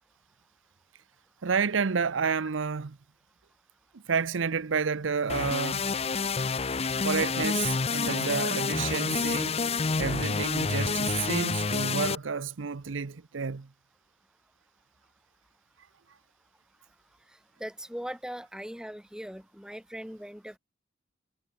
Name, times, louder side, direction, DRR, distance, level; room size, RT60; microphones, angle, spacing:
voice 1, 1.4-3.0 3.9-5.9 7.0-9.6 10.0-13.7, right 5 dB, 80° right, 0.7 m, -30 dB
sound 1, 5.3-12.2, left 4 dB, 30° left, 0.7 m, -28 dB
voice 2, 17.6-20.6, equal, 5° right, 4.7 m, -40 dB
head